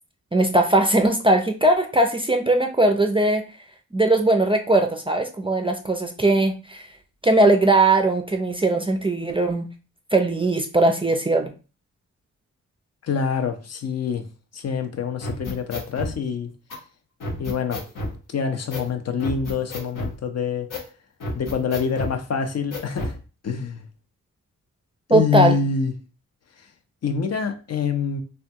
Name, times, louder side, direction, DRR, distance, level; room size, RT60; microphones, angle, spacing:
voice 1, 0.3-3.4 3.9-6.9 7.2-9.7 10.1-11.5 25.1-25.6, right 2 dB, 15° right, 0.4 m, -19 dB
voice 2, 13.0-14.2 14.5-16.5 17.4-17.8 18.3-20.7 21.3-23.1 23.4-23.8 25.1-25.9 27.0-28.2, left 6 dB, 50° left, 0.5 m, -25 dB
sound 1, 15.2-16.1 16.7-16.8 17.2-18.2 18.7-18.9 19.2-20.2 20.7-20.9 21.2-22.2 22.7-23.2, left 1 dB, 75° left, 1.0 m, -31 dB
3.3 x 2.2 x 2.7 m
cardioid pair, 70°, 32 cm